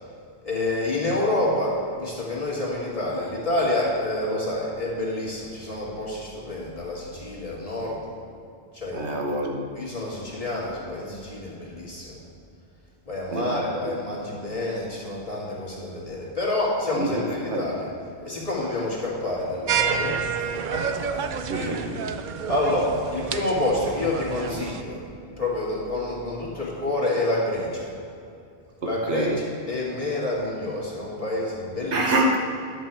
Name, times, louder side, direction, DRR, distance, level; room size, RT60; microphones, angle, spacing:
voice 1, 0.4-8.0 8.7-9.2 9.8-12.1 13.1-17.7 18.2-21.2 21.5-21.8 22.5-25.0 25.4-27.9 28.8-32.1, left 1 dB, 30° left, -5 dB, 2.0 m, -28 dB
voice 2, 8.9-9.7 13.3-13.6 16.9-17.7 21.5-22.1 28.8-29.4 31.9-32.4, right 1 dB, 75° right, 1 dB, 1.3 m, -26 dB
sound 1, 19.7-24.8, right 6 dB, 60° right, 0.5 m, -29 dB
10.5 x 7.2 x 4.4 m, 2.5 s
omnidirectional pair, 1.2 m